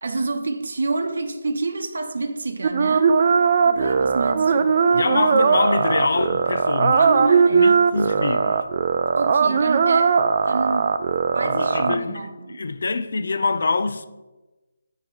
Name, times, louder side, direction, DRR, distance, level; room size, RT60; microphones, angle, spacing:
voice 1, 0.0-3.2 3.6-4.8 7.0-8.3 9.2-11.1 11.3-12.7, right 3 dB, 75° right, 0.8 m, -28 dB
sound 1, 2.6-12.0, right 5 dB, 40° right, 0.4 m, -19 dB
voice 2, 4.9-7.1 7.5-8.5 11.4-14.1, left 3 dB, 65° left, 0.5 m, -25 dB
7.6 x 5.4 x 4.9 m
hypercardioid pair, 170°, 0 cm